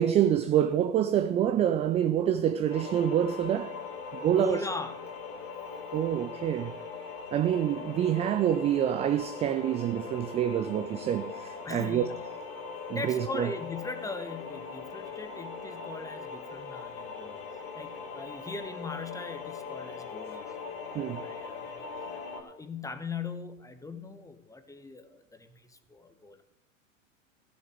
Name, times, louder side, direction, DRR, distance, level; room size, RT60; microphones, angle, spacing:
voice 1, 0.0-3.8 4.1-4.7 5.9-6.7 7.3-12.1 12.9-13.5 20.9-21.2, right 10 dB, 15° right, 0.3 m, -27 dB
sound 1, 2.7-22.4, left 5 dB, 50° left, 3.0 m, -41 dB
voice 2, 4.2-5.0 11.6-12.2 12.9-17.4 17.7-20.6 21.2-21.9 22.1-26.4, left 4 dB, 10° left, 1.2 m, -40 dB
14.5 x 7.1 x 6.6 m
hypercardioid pair, 95°, 40 cm